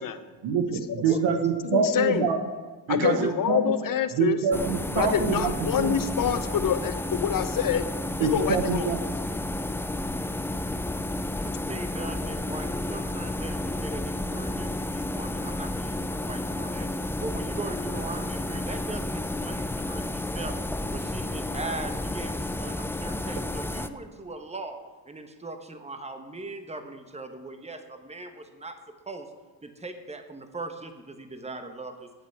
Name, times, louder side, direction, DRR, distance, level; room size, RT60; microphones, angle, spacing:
voice 1, 0.4-2.4 2.9-3.7 4.1-6.0 8.2-9.0, right 5 dB, 65° right, 6 dB, 1.5 m, -25 dB
voice 2, 1.6-2.3 2.9-4.4 4.9-7.8 8.2-8.9, left 9 dB, 40° left, 11 dB, 1.0 m, -26 dB
voice 3, 3.0-3.4 11.4-16.9 17.2-20.5 20.9-24.8 25.1-28.8 29.1-29.3 29.6-32.1, right 2 dB, 15° right, 7 dB, 1.3 m, -39 dB
sound 1, 4.5-23.9, left 1 dB, 5° left, 0.4 m, -31 dB
14.0 x 8.6 x 3.6 m, 1.4 s
hypercardioid pair, 60°, 49 cm